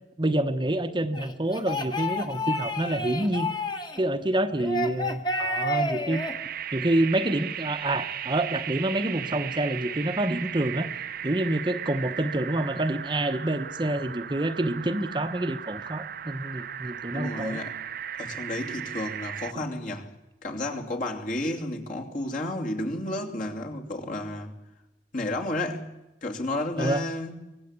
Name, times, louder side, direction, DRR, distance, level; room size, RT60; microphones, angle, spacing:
voice 1, 0.2-3.5 4.0-6.2 6.7-10.9 11.2-17.6 19.6-19.7 26.8-27.0, right 1 dB, 25° right, 1.0 m, -27 dB
sound 1, 1.1-4.0 4.6-6.3, left 1 dB, 25° left, 1.7 m, -30 dB
sound 2, 6.1-19.5, right 9 dB, 55° right, 0.8 m, -36 dB
voice 2, 17.1-17.8 18.2-20.1 20.4-24.5 25.1-25.9 26.2-27.4, left 1 dB, 50° left, 2.8 m, -32 dB
24.5 x 18.5 x 8.2 m
head